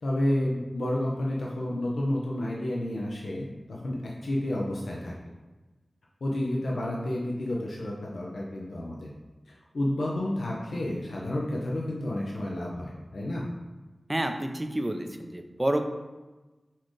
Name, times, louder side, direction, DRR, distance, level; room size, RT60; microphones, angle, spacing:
voice 1, 0.0-5.1 6.2-9.1 9.7-13.4, left 1 dB, 80° left, -3 dB, 0.6 m, -30 dB
voice 2, 14.1-15.8, right 1 dB, 20° right, 5 dB, 0.4 m, -29 dB
4.3 x 3.7 x 3.1 m, 1.2 s
wide cardioid pair, 80°, 0 cm